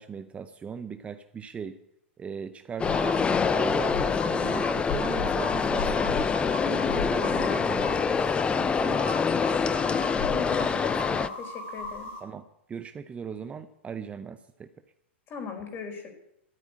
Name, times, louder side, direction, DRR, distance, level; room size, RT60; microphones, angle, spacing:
voice 1, 0.0-1.8 2.2-3.2 3.5-6.3 6.6-9.2 12.2-14.7, right 6 dB, 20° right, 10 dB, 0.8 m, -38 dB
sound 1, 2.8-12.2, left 3 dB, 60° left, 6.2 m, -36 dB
sound 2, 2.8-11.3, left 5 dB, 15° left, 0.6 m, -26 dB
voice 2, 10.2-12.1 15.3-16.1, left 6 dB, 30° left, 5 dB, 4.4 m, -37 dB
13.0 x 8.4 x 9.8 m, 0.79 s
hypercardioid pair, 105°, 7 cm